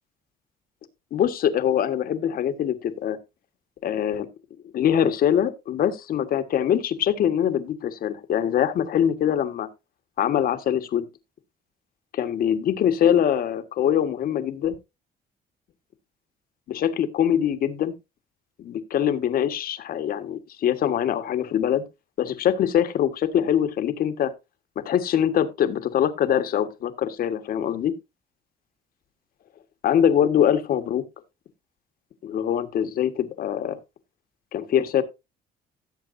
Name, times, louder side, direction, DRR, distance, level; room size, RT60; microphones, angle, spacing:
voice 1, 1.1-3.2 3.8-4.3 4.7-9.7 10.2-11.1 12.1-14.7 16.7-17.9 18.6-21.8 22.2-24.3 24.8-27.9 29.8-31.0 32.2-33.8 34.5-35.0, left 9 dB, 60° left, 1.5 m, -23 dB
17.0 x 7.5 x 2.6 m
cardioid pair, 110°, 17 cm